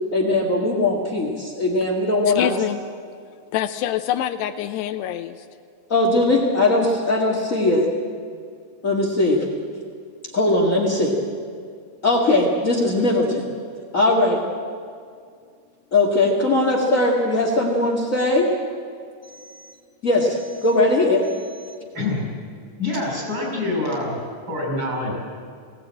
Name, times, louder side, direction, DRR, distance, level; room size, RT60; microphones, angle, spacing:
voice 1, 0.1-2.5 5.9-7.9 8.8-9.4 10.3-11.1 12.0-13.4 13.9-14.4 15.9-18.5 20.0-21.3, left 2 dB, 45° left, -1 dB, 1.1 m, -19 dB
voice 2, 2.4-2.8 3.5-5.3, left 12 dB, 80° left, 7 dB, 2.7 m, -25 dB
voice 3, 21.9-22.3 22.8-24.2 24.5-25.1, left 2 dB, 25° right, -2 dB, 7.0 m, -25 dB
20.0 x 17.5 x 8.9 m, 2.2 s
omnidirectional pair, 4.9 m